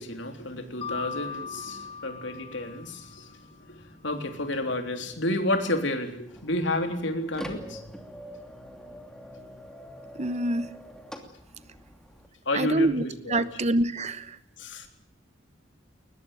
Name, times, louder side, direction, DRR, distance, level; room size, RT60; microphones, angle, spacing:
voice 1, 0.0-7.8 12.5-13.5 14.6-14.9, left 1 dB, 65° left, 6 dB, 3.6 m, -31 dB
Mallet percussion, 0.8-3.6, left 5 dB, 30° left, 2.0 m, -39 dB
sound 1, 6.3-12.3, equal, 5° left, 2.7 m, -44 dB
voice 2, 10.2-10.7 12.5-14.4, right 2 dB, 35° right, 15 dB, 1.0 m, -26 dB
22.0 x 20.5 x 9.2 m, 0.67 s
head